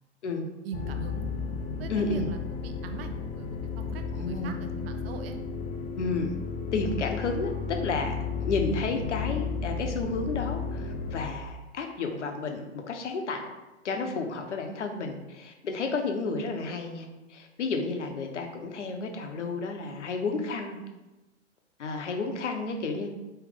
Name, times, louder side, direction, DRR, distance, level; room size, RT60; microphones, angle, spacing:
voice 1, 0.6-1.2 1.8-5.4, right 7 dB, 55° right, 6 dB, 0.7 m, -41 dB
sound 1, 0.7-11.3, left 5 dB, 25° left, 0.5 m, -33 dB
voice 2, 1.9-2.3 4.2-4.6 6.0-6.3 6.7-13.5 13.8-20.8 21.8-23.1, left 3 dB, 75° left, 4 dB, 0.9 m, -31 dB
4.9 x 3.1 x 3.4 m, 1.1 s
hypercardioid pair, 110°, 35 cm